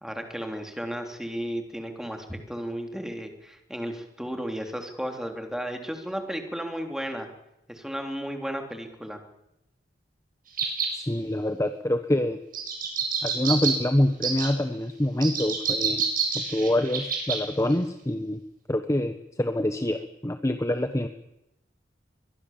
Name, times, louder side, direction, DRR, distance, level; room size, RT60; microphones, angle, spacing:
voice 1, 0.0-7.3 7.7-9.2, equal, 5° right, 4 dB, 3.3 m, -34 dB
sound 1, 10.6-10.9 12.5-13.7 14.2-14.5 15.2-17.4 17.7-17.8, right 6 dB, 50° right, 8.0 m, -27 dB
voice 2, 11.0-12.4 13.2-16.0 16.3-18.4 18.7-21.1, left 1 dB, 15° left, 8 dB, 1.2 m, -26 dB
23.0 x 22.5 x 7.4 m, 0.86 s
head